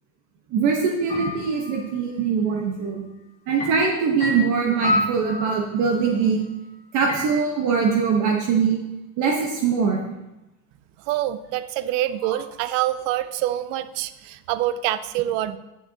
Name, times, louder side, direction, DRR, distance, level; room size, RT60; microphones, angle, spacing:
voice 1, 0.5-3.0 3.5-6.5 6.9-8.8 9.2-10.1, right 5 dB, 45° right, 0 dB, 1.3 m, -22 dB
sound 1, 1.1-1.9 3.6-6.0 7.1-7.2, left 1 dB, 15° left, 2.0 m, -28 dB
voice 2, 11.1-15.6, right 13 dB, 65° right, 13 dB, 0.6 m, -26 dB
10.0 x 6.9 x 2.9 m, 0.96 s
supercardioid pair, 145°, 40 cm